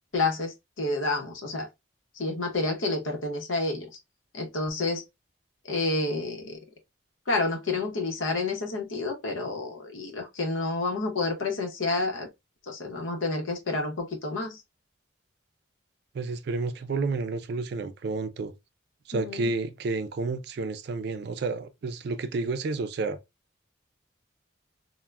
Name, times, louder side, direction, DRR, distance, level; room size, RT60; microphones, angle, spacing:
voice 1, 0.1-1.7 2.2-3.9 4.3-5.0 5.7-6.6 7.3-12.3 12.7-14.6 19.1-19.5, left 3 dB, 85° left, 0.8 m, -29 dB
voice 2, 16.1-18.5 19.1-23.2, right 3 dB, 55° right, 0.3 m, -30 dB
3.2 x 2.1 x 2.3 m
head